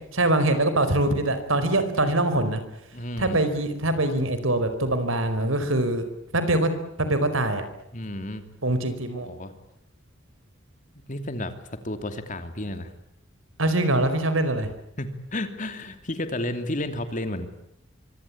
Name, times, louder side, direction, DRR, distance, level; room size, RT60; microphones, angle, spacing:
voice 1, 0.1-2.6 3.2-6.0 6.3-6.7 7.0-7.6 8.6-9.3 13.6-14.7, right 1 dB, 85° right, 10 dB, 4.8 m, -23 dB
voice 2, 2.9-3.4 7.9-8.4 9.1-9.5 11.1-11.5 11.8-12.9 15.0-17.5, left 1 dB, 40° left, 8 dB, 2.9 m, -32 dB
25.0 x 25.0 x 8.6 m, 0.79 s
head